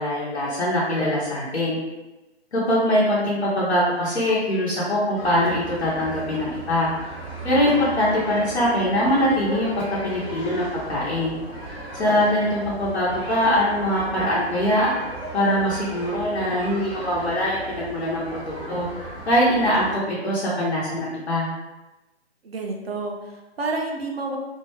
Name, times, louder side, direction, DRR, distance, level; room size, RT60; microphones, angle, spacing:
voice 1, 0.0-1.8 2.5-6.9 7.4-11.3 11.9-14.9 15.3-18.9 19.3-21.5, equal, 70° left, -7 dB, 0.9 m, -22 dB
sound 1, 5.2-20.0, right 1 dB, 10° left, 0.7 m, -36 dB
voice 2, 22.4-24.4, right 3 dB, 60° right, 1 dB, 0.6 m, -29 dB
2.6 x 2.1 x 3.0 m, 1.0 s
figure-of-eight pair, 140°, 34 cm